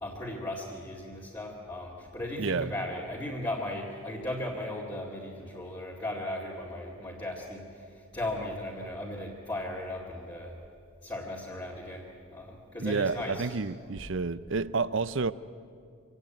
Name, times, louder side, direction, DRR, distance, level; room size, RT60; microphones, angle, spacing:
voice 1, 0.0-10.6 11.0-13.5, left 1 dB, 20° left, -6 dB, 2.3 m, -37 dB
voice 2, 2.4-2.7 12.8-15.3, right 4 dB, 60° right, 17 dB, 0.6 m, -30 dB
25.5 x 17.5 x 9.2 m, 2.3 s
head